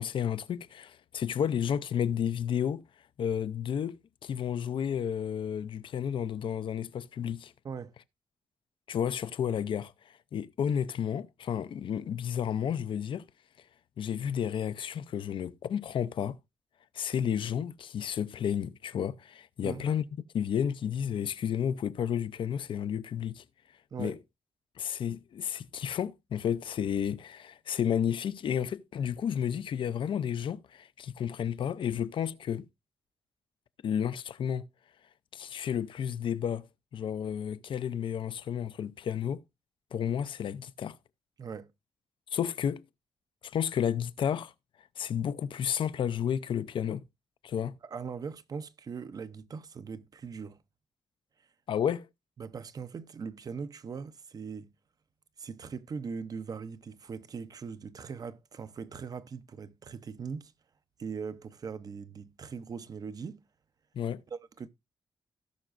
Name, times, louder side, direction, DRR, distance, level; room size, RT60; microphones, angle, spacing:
voice 1, 0.0-2.8 3.2-7.5 8.9-13.3 14.0-16.4 16.9-20.1 20.3-23.4 24.0-24.2 24.8-32.7 33.8-34.7 35.3-36.7 36.9-39.4 39.9-41.0 42.3-42.9 43.4-44.5 45.0-47.0 47.4-47.8 51.7-52.1 63.9-64.2, left 8 dB, 60° left, 0.5 m, -32 dB
voice 2, 41.4-41.7 47.8-50.6 52.4-54.7 55.4-60.5 61.0-63.4 64.3-64.7, right 5 dB, 40° right, 0.6 m, -40 dB
17.5 x 6.1 x 2.5 m
wide cardioid pair, 150°, 10 cm